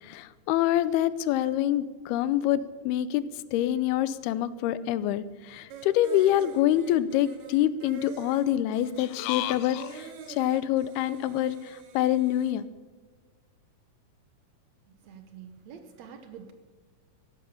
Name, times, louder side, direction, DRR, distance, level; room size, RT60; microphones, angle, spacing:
voice 1, 0.0-3.2 3.5-12.7, left 12 dB, 90° left, 16 dB, 2.7 m, -26 dB
sound 1, 5.7-12.5, right 6 dB, 85° right, 3.9 m, -46 dB
voice 2, 14.9-16.5, right 7 dB, 70° right, 8 dB, 1.7 m, -47 dB
15.0 x 12.0 x 7.0 m, 1.4 s
omnidirectional pair, 4.4 m